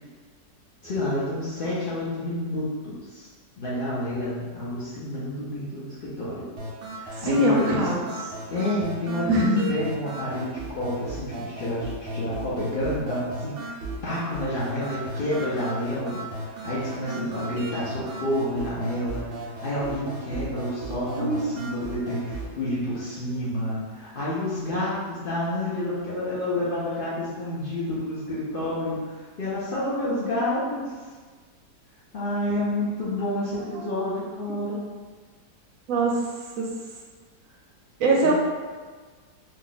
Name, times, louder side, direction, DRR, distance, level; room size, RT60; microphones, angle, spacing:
voice 1, 0.8-3.3 3.6-6.5 7.0-7.9 8.5-13.7 14.0-30.9 32.1-34.8 38.2-38.3, left 1 dB, 70° left, -8 dB, 0.5 m, -29 dB
sound 1, 6.6-22.6, right 1 dB, 85° right, 0.5 m, -36 dB
voice 2, 7.2-8.1 9.3-9.6 21.2-21.5 35.9-36.2 36.6-36.7 38.0-38.3, right 2 dB, 70° right, -2 dB, 0.8 m, -22 dB
2.8 x 2.4 x 3.8 m, 1.4 s
omnidirectional pair, 1.8 m